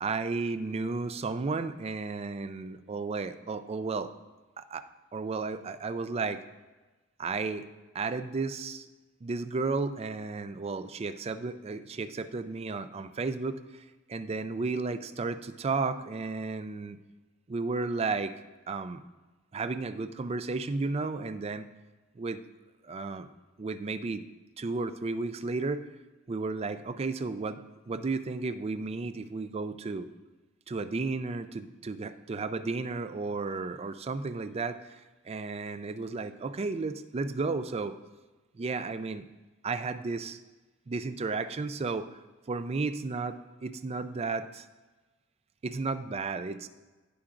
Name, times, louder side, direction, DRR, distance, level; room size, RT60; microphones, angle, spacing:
voice 1, 0.0-4.1 4.6-4.9 5.1-6.4 7.2-7.6 7.9-8.9 9.2-13.6 14.1-17.0 17.5-18.3 18.7-19.0 19.5-21.7 22.2-22.4 22.9-23.3 23.6-24.2 24.6-25.9 26.3-27.6 27.9-30.1 30.7-35.0 35.3-38.0 38.6-39.3 39.6-40.4 40.9-42.1 42.5-44.7 45.6-46.7, right 3 dB, 30° right, 11 dB, 0.4 m, -33 dB
17.0 x 5.8 x 2.5 m, 1.2 s
head